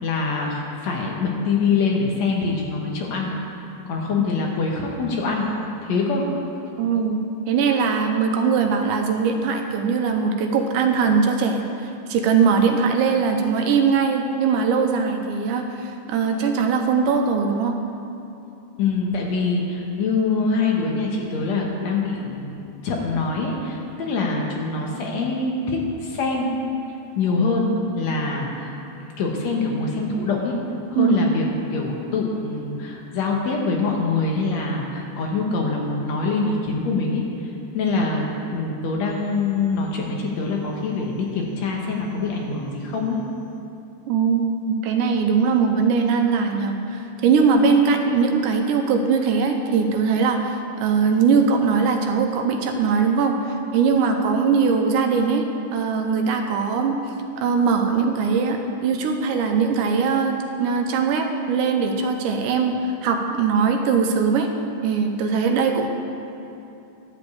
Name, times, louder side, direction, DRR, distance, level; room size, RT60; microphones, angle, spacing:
voice 1, 0.0-3.3 3.9-5.5 5.8-6.2 18.8-22.5 22.8-26.5 27.2-30.6 30.9-31.5 31.7-43.2, left 4 dB, 65° left, 0 dB, 2.0 m, -24 dB
voice 2, 6.8-17.8 31.0-31.2 44.1-57.0 57.4-64.5 64.8-65.9, right 5 dB, 85° right, 4 dB, 2.3 m, -21 dB
11.5 x 5.1 x 8.3 m, 2.8 s
omnidirectional pair, 3.7 m